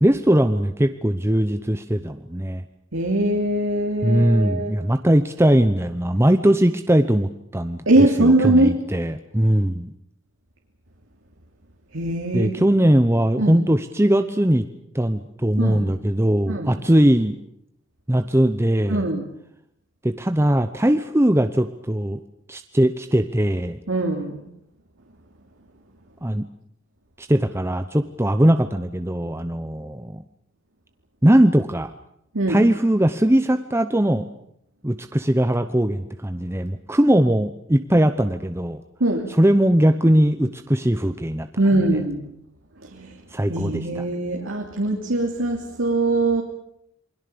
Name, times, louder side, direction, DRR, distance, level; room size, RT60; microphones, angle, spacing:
voice 1, 0.0-2.6 4.0-7.8 8.2-9.9 12.3-14.7 14.9-17.4 18.1-19.1 20.0-22.2 22.5-23.8 26.2-26.5 27.2-30.2 31.2-31.9 32.5-34.3 34.8-38.8 39.3-41.5 41.7-42.0 43.3-44.0, right 1 dB, 15° right, 8 dB, 0.9 m, -20 dB
voice 2, 2.9-4.7 7.9-8.8 11.9-12.6 13.4-13.6 15.6-15.8 16.5-16.8 18.9-19.3 23.9-24.5 32.3-32.6 39.0-39.3 41.6-42.3 42.9-43.1 43.5-46.4, right 2 dB, 80° right, 1 dB, 2.9 m, -21 dB
28.0 x 21.5 x 6.9 m, 0.75 s
head